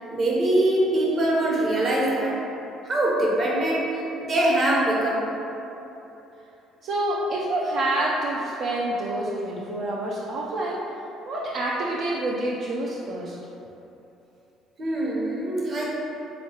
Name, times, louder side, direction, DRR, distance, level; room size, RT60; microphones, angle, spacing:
voice 1, 0.0-2.4 2.8-5.3 14.8-15.9, right 1 dB, 45° right, -4 dB, 0.9 m, -23 dB
voice 2, 6.8-10.8 11.3-13.4, right 1 dB, 65° right, -5 dB, 0.4 m, -27 dB
3.6 x 3.0 x 2.8 m, 3.0 s
supercardioid pair, 70°, 0 cm